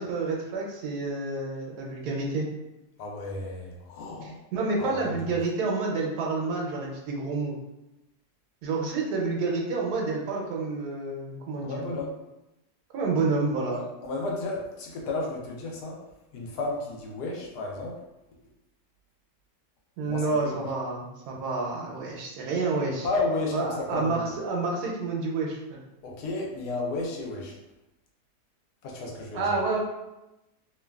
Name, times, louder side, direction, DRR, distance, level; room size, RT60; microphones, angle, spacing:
voice 1, 0.0-2.5 4.2-7.5 8.6-11.8 12.9-13.8 20.0-23.1 23.5-25.8 29.3-29.8, right 3 dB, 80° right, -1 dB, 1.2 m, -29 dB
voice 2, 3.0-4.4 4.8-5.3 11.6-12.1 13.7-16.0 16.3-17.9 20.1-20.7 23.0-24.3 26.0-27.6 28.8-29.4, left 2 dB, 85° left, -1 dB, 1.2 m, -33 dB
3.0 x 2.2 x 2.3 m, 0.96 s
omnidirectional pair, 1.7 m